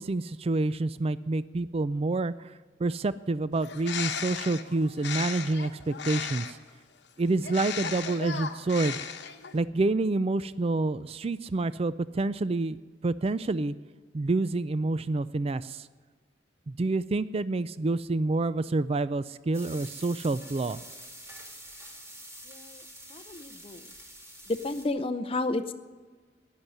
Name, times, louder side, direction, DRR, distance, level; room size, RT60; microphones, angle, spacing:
voice 1, 0.0-2.5 2.8-6.6 7.2-9.0 9.5-12.8 13.0-13.7 14.1-15.9 16.7-20.8, right 2 dB, 30° right, 16 dB, 0.4 m, -28 dB
Bird, 3.6-6.7 7.4-9.6, left 7 dB, 65° left, 1.1 m, -36 dB
sound 1, 19.5-24.9, equal, 15° right, 2.5 m, -46 dB
voice 2, 22.5-22.8 23.1-23.9 24.5-25.7, left 2 dB, 30° left, 8 dB, 0.6 m, -32 dB
13.5 x 10.5 x 9.8 m, 1.4 s
head